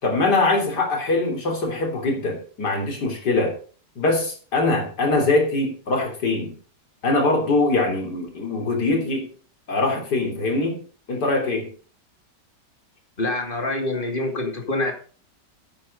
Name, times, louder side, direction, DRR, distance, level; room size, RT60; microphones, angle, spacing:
voice 1, 0.0-3.5 4.0-6.6 7.0-9.3 9.7-10.8 11.1-11.7, left 2 dB, 65° left, 2 dB, 3.8 m, -22 dB
voice 2, 13.2-14.9, left 2 dB, 30° left, 3 dB, 2.5 m, -25 dB
9.7 x 9.5 x 5.3 m, 0.41 s
omnidirectional pair, 1.9 m